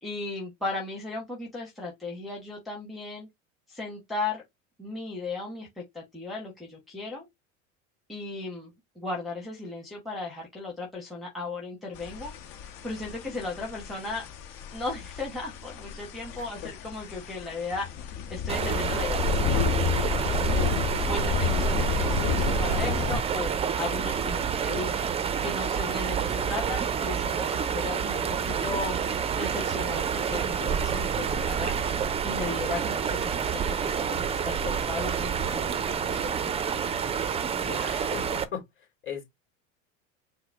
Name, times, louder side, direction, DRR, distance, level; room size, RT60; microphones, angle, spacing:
voice 1, 0.0-3.3 3.7-4.4 4.8-5.7 5.9-7.3 8.1-8.7 9.0-12.3 12.8-14.2 14.7-20.7 21.1-24.9 25.4-29.0 29.3-31.9 32.2-36.3, left 3 dB, ahead, 1.0 m, -36 dB
sound 1, 12.0-23.2, left 7 dB, 60° left, 1.0 m, -31 dB
sound 2, 18.5-38.4, right 7 dB, 15° right, 0.4 m, -28 dB
voice 2, 37.7-39.2, left 8 dB, 30° left, 2.4 m, -38 dB
4.6 x 2.1 x 3.4 m
supercardioid pair, 105°, 38 cm